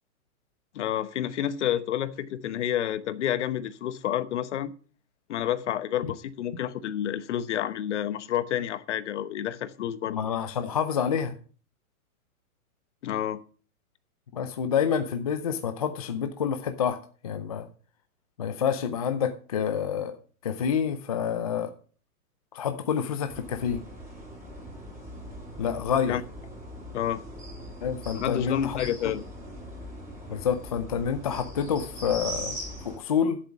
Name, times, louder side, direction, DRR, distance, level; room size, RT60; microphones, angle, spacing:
voice 1, 0.7-4.7 5.3-10.2 13.0-13.4 26.1-26.2 26.9-27.2 28.1-29.2, left 11 dB, 50° left, 1.0 m, -29 dB
voice 2, 10.1-11.3 14.3-17.0 17.2-17.7 18.4-20.2 20.4-21.7 22.5-23.8 25.6-26.2 27.8-28.8 29.0-29.1 30.3-33.4, left 7 dB, 25° left, 0.5 m, -28 dB
sound 1, 23.3-33.0, equal, 5° right, 4.4 m, -40 dB
10.5 x 8.0 x 5.9 m
hypercardioid pair, 160°, 44 cm